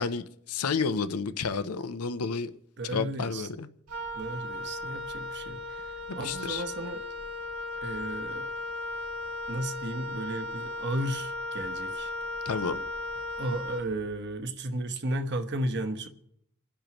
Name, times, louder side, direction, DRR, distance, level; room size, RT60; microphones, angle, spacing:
voice 1, 0.0-2.5 2.9-3.7 6.1-6.6 12.5-12.8, left 5 dB, 85° left, 0.7 m, -31 dB
voice 2, 2.8-3.5 4.1-7.0 7.8-8.5 9.5-12.1 13.4-16.1, right 1 dB, 55° right, 1.2 m, -34 dB
Wind instrument woodwind instrument, 3.9-14.3, left 2 dB, 85° right, 3.3 m, -36 dB
29.0 x 10.0 x 3.1 m
head